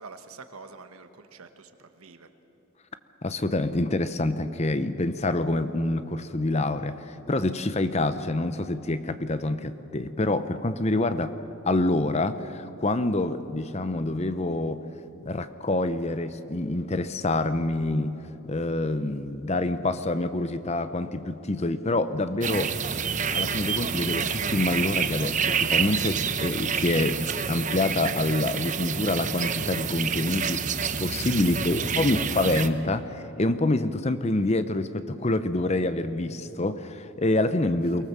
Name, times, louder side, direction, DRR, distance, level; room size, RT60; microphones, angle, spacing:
voice 1, 0.0-2.3 31.4-32.1 37.9-38.0, right 4 dB, 85° right, 8 dB, 1.4 m, -47 dB
voice 2, 3.2-11.3 11.6-14.8 15.2-18.2 18.5-22.7 23.3-27.2 27.5-30.7 31.0-38.1, left 2 dB, 30° left, 11 dB, 0.7 m, -26 dB
sound 1, 22.4-32.7, right 6 dB, 35° right, 0.8 m, -28 dB
23.5 x 19.0 x 7.4 m, 3.0 s
head